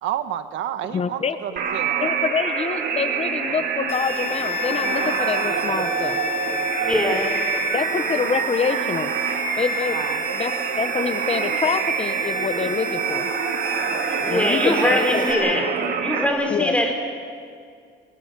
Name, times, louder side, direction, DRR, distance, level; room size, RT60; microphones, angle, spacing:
voice 1, 0.0-2.0 9.9-10.2, right 11 dB, 85° right, 10 dB, 1.1 m, -30 dB
voice 2, 0.9-1.4 2.0-6.2 7.7-9.1 9.6-10.0 10.3-13.3 14.3-15.2 16.5-16.7, left 6 dB, 35° left, 10 dB, 0.8 m, -26 dB
sound 1, 1.6-16.3, right 6 dB, 55° right, 2.6 m, -26 dB
sound 2, 3.9-15.3, left 3 dB, 75° left, 5.7 m, -32 dB
voice 3, 4.8-7.0 9.2-9.4, right 3 dB, 40° right, 1 dB, 5.3 m, -38 dB
voice 4, 6.8-7.4 14.2-15.7 16.0-16.9, left 1 dB, 5° left, 2 dB, 3.7 m, -22 dB
29.5 x 22.0 x 6.6 m, 2.2 s
cardioid pair, 150°, 19 cm